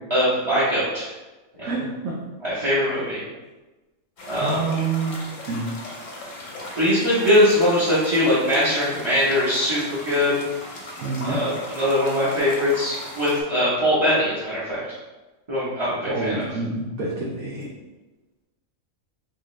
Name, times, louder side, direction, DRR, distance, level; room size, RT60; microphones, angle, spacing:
voice 1, 0.1-1.1 1.6-1.7 2.4-3.2 4.3-4.6 6.8-10.3 11.2-14.8 15.5-16.4, equal, 25° right, -11 dB, 0.8 m, -21 dB
voice 2, 1.6-2.1 4.4-5.2 5.5-5.7 11.0-11.4 16.1-17.7, right 3 dB, 70° right, -4 dB, 1.1 m, -27 dB
sound 1, 4.2-13.4, left 1 dB, 65° left, 1.2 m, -38 dB
3.7 x 3.0 x 3.1 m, 1.1 s
omnidirectional pair, 1.5 m